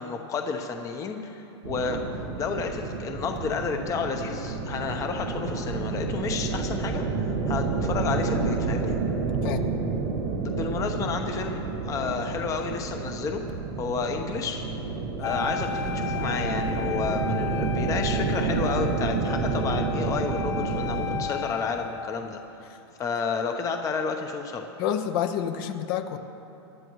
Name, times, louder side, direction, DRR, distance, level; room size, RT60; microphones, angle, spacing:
voice 1, 0.0-2.0 2.4-7.0 7.5-8.9 10.4-13.4 13.8-14.7 15.2-22.4 23.0-24.7, left 5 dB, 25° left, 4 dB, 1.0 m, -31 dB
sound 1, 1.6-21.2, right 4 dB, 80° right, 2.0 m, -29 dB
Wind instrument woodwind instrument, 15.2-22.2, left 8 dB, 80° left, 1.0 m, -34 dB
voice 2, 24.8-26.2, left 9 dB, 55° left, 7 dB, 1.1 m, -28 dB
25.0 x 12.0 x 3.1 m, 3.0 s
supercardioid pair, 140°, 14 cm